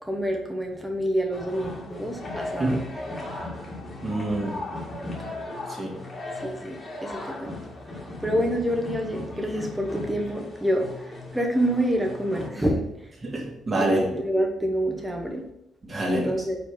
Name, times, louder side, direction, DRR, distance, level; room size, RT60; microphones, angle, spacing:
voice 1, 0.0-2.8 6.4-7.6 8.2-13.1 13.8-15.4 16.1-16.6, equal, 5° right, 1 dB, 1.1 m, -27 dB
sound 1, 1.3-12.5, left 2 dB, 30° left, 1.9 m, -37 dB
voice 2, 4.0-4.6 5.7-6.0 8.3-8.4 13.2-14.0 15.8-16.3, right 1 dB, 35° right, -2 dB, 2.2 m, -26 dB
4.9 x 4.3 x 5.1 m, 0.81 s
cardioid pair, 90°, 0 cm